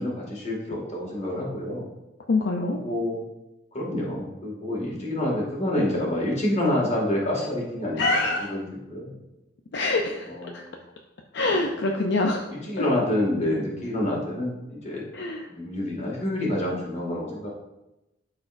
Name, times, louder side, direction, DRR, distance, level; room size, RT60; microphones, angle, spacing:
voice 1, 0.0-1.9 2.6-3.2 3.7-8.6 8.9-9.2 10.3-10.7 11.5-11.6 12.7-15.1 15.5-17.5, left 1 dB, 40° left, -3 dB, 2.0 m, -28 dB
voice 2, 2.3-2.8 8.0-8.5 9.7-10.6 11.3-12.5 15.1-15.4, left 2 dB, 65° left, 1 dB, 0.6 m, -25 dB
11.5 x 4.2 x 2.6 m, 0.96 s
head